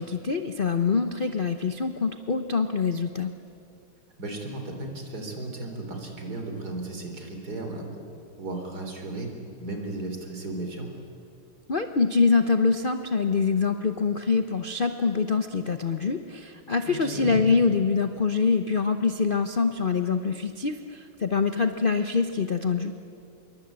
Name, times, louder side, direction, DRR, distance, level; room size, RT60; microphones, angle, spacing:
voice 1, 0.0-3.3 11.7-22.9, left 5 dB, 65° left, 7 dB, 0.5 m, -25 dB
voice 2, 4.2-8.0 8.4-9.3 9.6-10.9 16.9-17.4, right 2 dB, 45° right, 3 dB, 4.1 m, -35 dB
26.5 x 22.5 x 8.7 m, 2.5 s
omnidirectional pair, 2.4 m